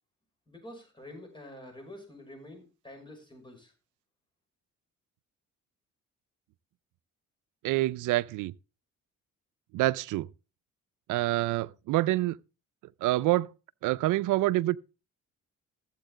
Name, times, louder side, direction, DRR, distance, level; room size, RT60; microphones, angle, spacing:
voice 1, 0.5-3.7, left 1 dB, 15° left, 6.2 m, -47 dB
voice 2, 7.6-8.5 9.7-10.3 11.1-12.4 13.0-13.5 13.8-14.8, right 17 dB, 85° right, 0.5 m, -26 dB
14.5 x 8.1 x 3.8 m
cardioid pair, 90°, 30 cm